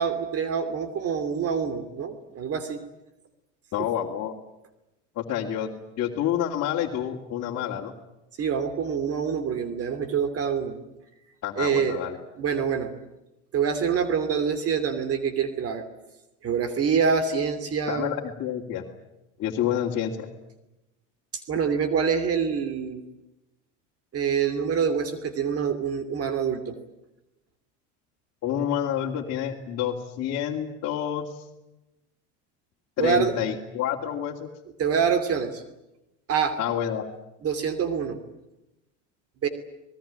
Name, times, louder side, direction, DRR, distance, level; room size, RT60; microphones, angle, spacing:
voice 1, 0.0-2.8 8.4-10.8 11.6-12.0 12.4-12.9 13.5-15.9 16.4-18.1 21.5-23.0 24.1-26.7 33.0-33.3 34.8-35.6 36.3-36.6 37.4-38.2 39.4-39.5, right 6 dB, 40° right, 11 dB, 2.9 m, -26 dB
voice 2, 3.7-4.3 5.2-5.7 6.0-7.9 11.4-12.2 17.9-18.8 19.4-20.3 28.4-31.4 33.0-34.5 36.6-37.1, left 10 dB, 45° left, -3 dB, 2.8 m, -28 dB
26.0 x 20.0 x 8.9 m, 0.95 s
hypercardioid pair, 95°, 36 cm